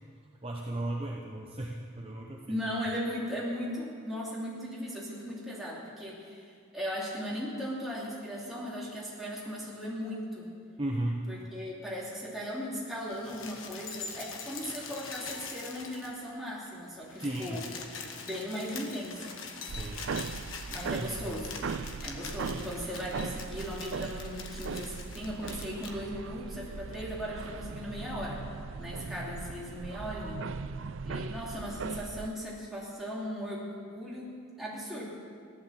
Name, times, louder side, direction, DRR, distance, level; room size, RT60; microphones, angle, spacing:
voice 1, 0.4-2.6 10.8-11.2 17.2-17.6 19.6-20.0 21.0-21.4 22.4-22.6, right 1 dB, 25° right, -1 dB, 0.9 m, -35 dB
voice 2, 2.5-10.5 11.3-17.6 18.1-19.3 20.7-21.7 22.0-28.4 28.8-30.4 31.0-35.1, equal, ahead, -6 dB, 2.9 m, -37 dB
sound 1, 13.0-16.3 16.6-16.7 17.0-26.0 26.9-27.0, left 5 dB, 60° left, 1.4 m, -43 dB
sound 2, 19.7-32.3, right 5 dB, 60° right, 0.4 m, -39 dB
15.0 x 11.5 x 7.5 m, 2.2 s
head